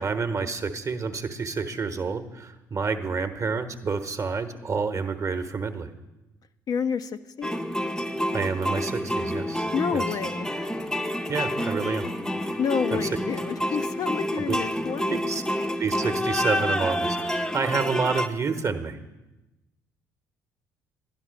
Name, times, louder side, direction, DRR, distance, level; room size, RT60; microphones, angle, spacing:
voice 1, 0.0-5.9 8.3-9.7 9.9-10.0 11.3-12.1 12.9-13.1 14.5-14.6 15.3-19.0, right 4 dB, 30° right, 8 dB, 1.0 m, -29 dB
voice 2, 6.7-7.5 9.7-10.5 12.6-15.4, left 7 dB, 40° left, 9 dB, 0.5 m, -29 dB
sound 1, 7.4-18.3, equal, 5° left, 0.7 m, -28 dB
11.5 x 11.0 x 5.2 m, 1.0 s
figure-of-eight pair, 50°, 10 cm